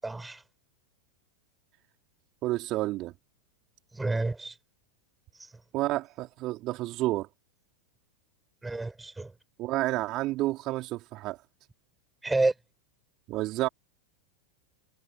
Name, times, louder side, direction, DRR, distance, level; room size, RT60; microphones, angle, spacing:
voice 1, 0.0-0.4 3.9-4.5 8.6-9.3 12.2-12.5, right 2 dB, 10° right, 6.0 m, -29 dB
voice 2, 2.4-3.1 5.7-7.3 9.6-11.4 13.3-13.7, right 17 dB, 35° right, 4.4 m, -30 dB
figure-of-eight pair, 90°, 0 cm